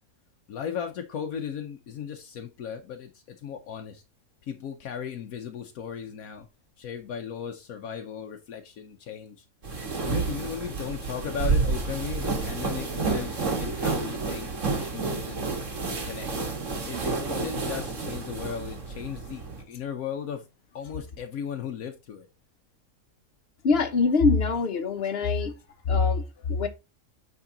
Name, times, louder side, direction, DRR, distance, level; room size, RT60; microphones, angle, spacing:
voice 1, 0.5-4.0 4.4-6.5 6.8-9.4 10.0-14.5 14.8-15.5 15.9-16.3 16.8-19.4 19.7-20.5 20.7-22.3 26.1-26.3, left 8 dB, 80° left, 1.2 m, -36 dB
sound 1, 9.6-19.6, right 4 dB, 60° right, 1.9 m, -30 dB
voice 2, 23.6-25.6 25.9-26.7, left 4 dB, 45° left, 1.2 m, -24 dB
8.7 x 3.7 x 3.7 m
omnidirectional pair, 1.5 m